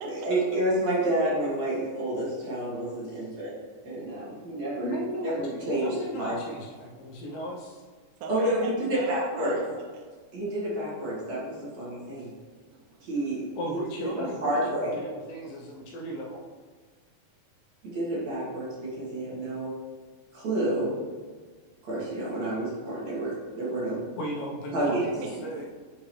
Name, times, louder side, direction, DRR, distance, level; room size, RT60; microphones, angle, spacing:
voice 1, 0.2-3.5 3.8-4.9 5.2-6.4 8.3-9.6 10.3-12.3 13.0-15.0 17.8-19.7 20.3-21.0 21.8-24.0 24.7-25.0, right 1 dB, 55° right, -7 dB, 2.6 m, -29 dB
voice 2, 3.0-3.4 4.8-7.8 13.6-16.4 24.2-25.7, equal, 75° left, -2 dB, 2.2 m, -36 dB
voice 3, 8.2-10.1 12.7-13.4 24.8-25.5, right 4 dB, 85° right, 2 dB, 1.8 m, -40 dB
9.5 x 3.8 x 3.1 m, 1.5 s
omnidirectional pair, 4.4 m